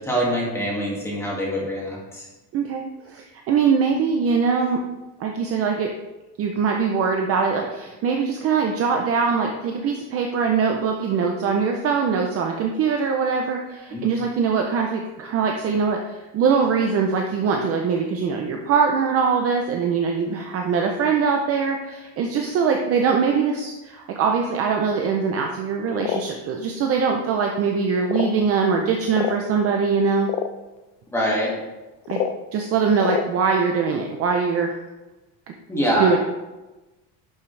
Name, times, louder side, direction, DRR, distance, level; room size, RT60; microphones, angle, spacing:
voice 1, 0.1-2.3 13.9-14.0 31.1-31.6 35.7-36.2, equal, 5° left, -5 dB, 1.9 m, -24 dB
voice 2, 2.5-4.8 5.2-6.0 6.4-30.3 32.1-32.2 32.5-34.7 36.0-36.2, right 5 dB, 35° right, 2 dB, 0.5 m, -22 dB
sound 1, 25.9-26.2 27.1-27.2 28.0-28.4 29.1-29.4 30.2-30.5 32.0-32.4 33.0-33.3, left 8 dB, 65° left, 0.7 m, -26 dB
11.0 x 5.8 x 3.2 m, 1.1 s
cardioid pair, 180°, 43 cm